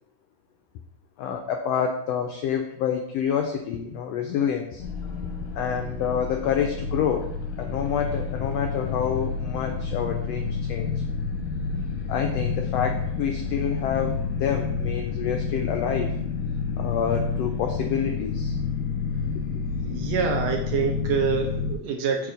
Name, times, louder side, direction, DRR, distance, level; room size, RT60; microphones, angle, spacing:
voice 1, 1.2-4.8 5.6-7.3 7.6-10.9 12.1-16.1 16.8-18.5 19.5-19.6, left 8 dB, 85° left, 4 dB, 1.4 m, -28 dB
sound 1, 4.8-21.7, left 5 dB, 65° left, 1.3 m, -29 dB
voice 2, 19.8-22.3, right 6 dB, 70° right, 2 dB, 1.8 m, -26 dB
6.7 x 3.3 x 4.9 m, 0.74 s
omnidirectional pair, 3.5 m